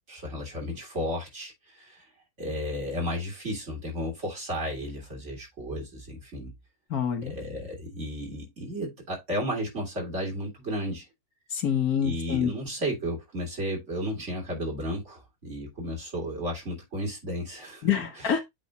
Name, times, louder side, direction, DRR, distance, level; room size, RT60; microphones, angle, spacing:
voice 1, 0.1-2.0 2.4-6.5 7.2-11.1 12.0-17.8 18.2-18.4, equal, 50° right, 3.7 m, -33 dB
voice 2, 6.9-7.4 11.5-12.5 17.8-18.4, left 8 dB, 75° left, 1.8 m, -26 dB
8.4 x 3.6 x 4.0 m
omnidirectional pair, 1.6 m